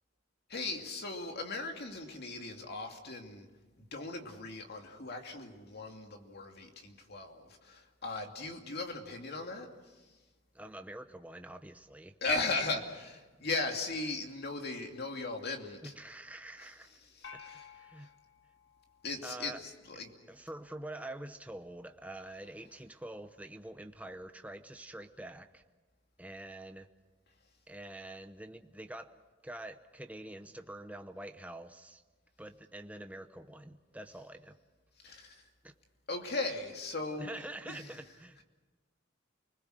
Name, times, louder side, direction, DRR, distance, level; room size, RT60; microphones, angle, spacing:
voice 1, 0.5-3.5 3.8-9.7 12.2-15.9 16.6-16.7 17.0-17.7 18.0-18.1 19.0-20.1 35.0-35.4 36.1-37.3 37.7-38.0, left 3 dB, 55° left, 3 dB, 2.6 m, -38 dB
voice 2, 10.5-12.2 15.8-16.9 17.5-18.1 19.2-19.6 19.9-20.0 20.3-25.6 26.2-26.9 27.7-29.2 29.4-32.0 32.4-34.5 35.6-35.7 37.2-38.4, right 1 dB, 10° right, 7 dB, 0.8 m, -46 dB
sound 1, 17.2-19.7, left 6 dB, 75° left, 2.2 m, -54 dB
30.0 x 20.5 x 6.5 m, 1.3 s
head